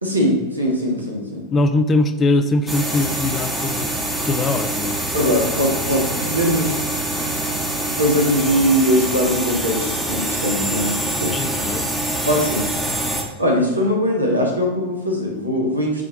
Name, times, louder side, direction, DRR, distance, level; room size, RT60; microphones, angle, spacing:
voice 1, 0.0-1.5 5.1-6.7 7.8-11.3 12.2-12.7 13.4-16.1, equal, 85° right, -1 dB, 1.4 m, -21 dB
voice 2, 1.5-3.9 4.3-5.0 11.3-11.9 12.6-12.7, left 2 dB, 25° left, 10 dB, 0.5 m, -21 dB
sound 1, 2.7-13.2, right 1 dB, 5° right, 1.1 m, -25 dB
7.3 x 3.5 x 5.1 m, 1.1 s
figure-of-eight pair, 90°, 0 cm